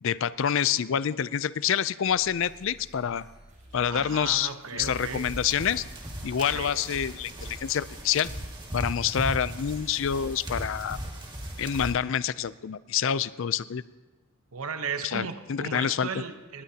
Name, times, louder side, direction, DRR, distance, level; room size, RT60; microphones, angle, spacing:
voice 1, 0.0-3.3 3.7-5.9 6.2-8.3 8.7-11.0 11.6-13.8 15.1-16.1, left 8 dB, 60° left, 17 dB, 0.4 m, -27 dB
sound 1, 2.0-7.9, right 1 dB, 35° right, 4.5 m, -53 dB
voice 2, 3.9-5.2 6.4-6.7 14.5-16.6, right 5 dB, 80° right, 8 dB, 0.9 m, -35 dB
sound 2, 4.8-11.9, equal, 20° right, 1.9 m, -37 dB
19.5 x 18.5 x 2.8 m, 1.2 s
head